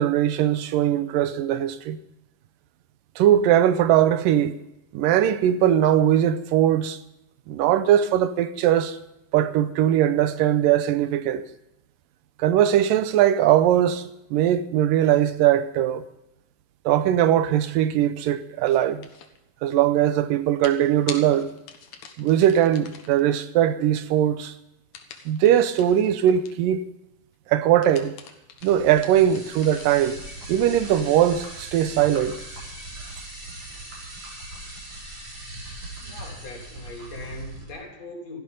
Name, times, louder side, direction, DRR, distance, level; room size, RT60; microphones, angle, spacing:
voice 1, 0.0-2.0 3.2-4.5 4.9-7.0 7.5-9.0 9.3-11.4 12.4-14.0 14.3-16.0 16.9-19.0 19.6-21.5 22.2-24.5 25.3-26.9 27.5-28.1 28.6-30.2 30.5-32.3, right 11 dB, 80° right, 2.4 m, -20 dB
sound 1, 18.7-19.4 20.6-23.2 24.9-26.7 27.6-30.2, left 7 dB, 65° left, 2.6 m, -43 dB
sound 2, 28.6-37.7, right 1 dB, 60° right, 7.5 m, -40 dB
voice 2, 36.0-38.4, left 2 dB, 50° left, 4.3 m, -39 dB
16.0 x 13.5 x 5.4 m
omnidirectional pair, 3.9 m